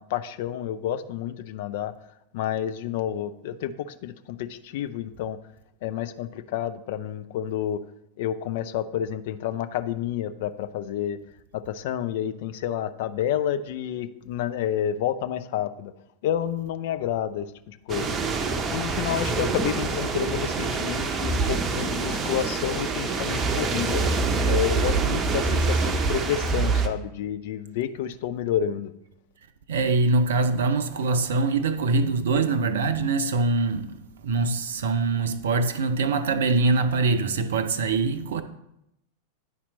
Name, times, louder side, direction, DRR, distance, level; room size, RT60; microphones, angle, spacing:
voice 1, 0.0-1.9 2.3-5.4 5.8-7.8 8.2-11.2 11.5-15.9 16.2-18.1 18.7-24.0 24.5-28.9, left 10 dB, 50° left, 0.5 m, -29 dB
sound 1, 17.9-26.9, right 4 dB, 25° right, 0.7 m, -25 dB
voice 2, 29.7-38.4, right 3 dB, 60° right, 0.6 m, -23 dB
10.0 x 4.3 x 4.1 m
figure-of-eight pair, 90°, 0 cm